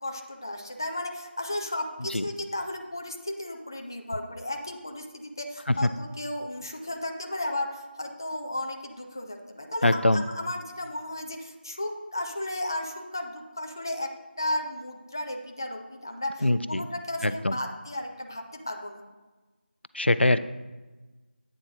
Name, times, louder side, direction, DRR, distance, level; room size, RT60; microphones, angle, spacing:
voice 1, 0.0-14.1 14.4-19.0, left 1 dB, 20° left, 3 dB, 0.5 m, -34 dB
voice 2, 9.8-10.2 16.4-16.8 17.2-17.6 19.9-20.4, left 1 dB, 75° left, 13 dB, 0.5 m, -23 dB
8.9 x 7.3 x 2.8 m, 1.2 s
figure-of-eight pair, 170°, 6 cm